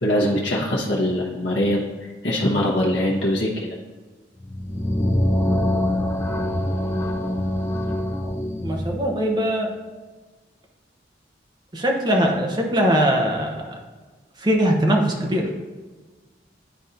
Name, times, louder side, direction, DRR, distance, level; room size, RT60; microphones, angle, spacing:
voice 1, 0.0-3.8, left 1 dB, 80° left, -4 dB, 0.9 m, -22 dB
sound 1, 4.4-9.1, left 1 dB, 15° left, 0.4 m, -24 dB
voice 2, 8.6-9.7 11.7-13.8 14.4-15.5, equal, 25° right, 1 dB, 0.8 m, -21 dB
10.5 x 4.1 x 2.6 m, 1.3 s
head